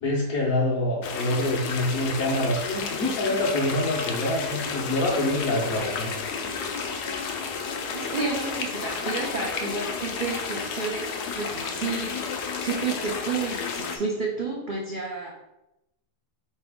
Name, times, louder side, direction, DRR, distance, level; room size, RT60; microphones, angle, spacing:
voice 1, 0.0-6.2, left 1 dB, 65° left, -6 dB, 1.2 m, -26 dB
sound 1, 1.0-14.0, left 5 dB, 85° left, 1.2 m, -32 dB
voice 2, 7.9-15.3, right 4 dB, 80° right, -2 dB, 0.4 m, -31 dB
3.8 x 3.3 x 3.5 m, 0.91 s
omnidirectional pair, 1.7 m